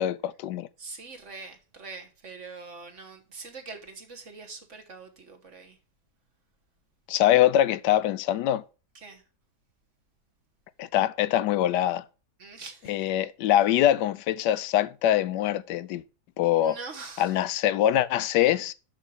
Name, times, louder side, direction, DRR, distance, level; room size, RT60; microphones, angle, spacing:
voice 1, 0.0-0.7 7.1-8.6 10.8-12.0 12.9-16.0 16.4-16.8 17.2-18.7, left 12 dB, 85° left, 1.2 m, -23 dB
voice 2, 0.8-5.8 9.0-9.2 12.4-13.1 16.6-17.4, right 4 dB, 50° right, 1.6 m, -43 dB
6.1 x 6.0 x 6.4 m
omnidirectional pair, 1.8 m